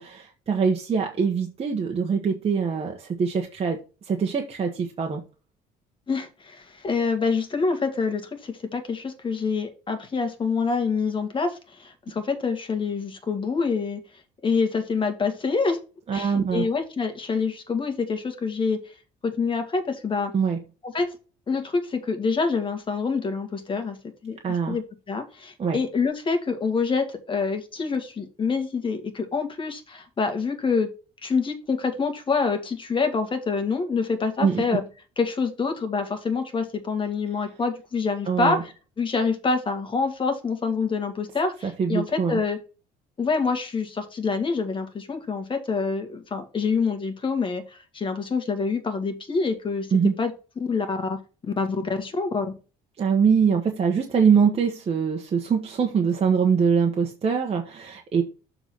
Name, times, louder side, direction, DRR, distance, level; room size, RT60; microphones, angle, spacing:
voice 1, 0.0-5.2 16.1-16.7 20.3-20.6 24.4-24.8 25.6-25.8 34.4-34.6 38.3-38.6 41.6-42.4 49.9-50.2 53.0-58.2, right 6 dB, 35° right, 1.3 m, -23 dB
voice 2, 6.1-14.0 14.4-15.8 16.1-18.9 19.2-20.3 20.8-21.1 21.5-24.0 24.2-30.9 31.2-34.8 35.2-42.6 43.2-49.9 50.2-50.3 50.7-51.2 51.6-52.5, left 4 dB, 30° left, 2.0 m, -26 dB
7.0 x 4.0 x 6.0 m
cardioid pair, 110°, 17 cm